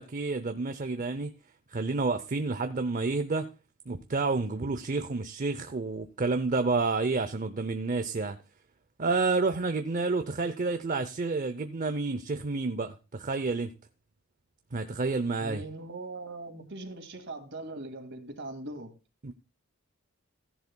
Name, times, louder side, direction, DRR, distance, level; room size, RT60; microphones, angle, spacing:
voice 1, 0.0-1.4 1.7-3.5 3.9-8.4 9.0-13.7 14.7-15.6 19.2-19.3, right 3 dB, 40° right, 0.6 m, -29 dB
voice 2, 15.4-18.9, right 2 dB, 55° right, 2.2 m, -40 dB
15.5 x 10.5 x 2.2 m
head